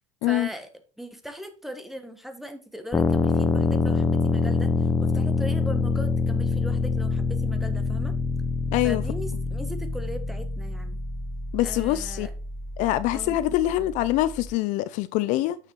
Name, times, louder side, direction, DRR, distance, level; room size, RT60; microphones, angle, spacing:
voice 1, 0.2-0.7 1.0-8.1 8.8-11.0 11.6-12.3 13.1-13.4, equal, ahead, 1.3 m, -39 dB
sound 1, 2.9-14.5, left 3 dB, 15° left, 0.6 m, -26 dB
voice 2, 8.7-9.0 11.5-12.3 12.8-15.6, left 15 dB, 60° left, 0.5 m, -24 dB
7.2 x 6.4 x 3.3 m
supercardioid pair, 115°, 14 cm